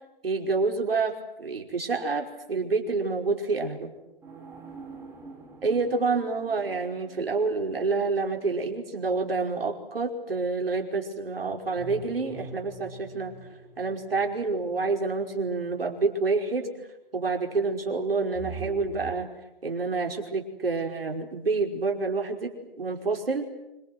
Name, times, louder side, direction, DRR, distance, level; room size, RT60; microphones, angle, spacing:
voice 1, 0.2-3.9 5.6-13.3 13.8-16.7 17.1-19.3 19.6-23.5, right 4 dB, 75° right, 2 dB, 5.4 m, -28 dB
sound 1, 4.2-9.3 11.8-15.7 18.3-19.3, right 3 dB, 10° right, 4.4 m, -45 dB
27.0 x 26.0 x 8.0 m, 0.93 s
figure-of-eight pair, 135°, 29 cm